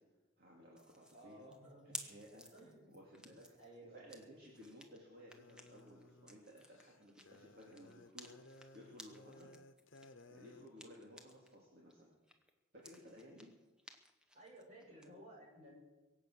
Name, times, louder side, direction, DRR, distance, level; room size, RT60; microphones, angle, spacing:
voice 1, 0.4-1.5 1.8-2.5 2.9-3.5 3.9-9.5 10.3-12.2 12.7-13.5, equal, 50° right, -3 dB, 2.6 m, -57 dB
sound 1, 0.8-11.6 11.9-15.1, equal, 5° right, 1.0 m, -56 dB
voice 2, 1.1-1.9 2.5-3.0 3.6-4.3 14.3-15.7, right 1 dB, 35° right, -3 dB, 6.4 m, -57 dB
sound 2, 5.3-10.7, left 2 dB, 75° left, 1.0 m, -60 dB
23.0 x 8.4 x 6.4 m, 1.2 s
head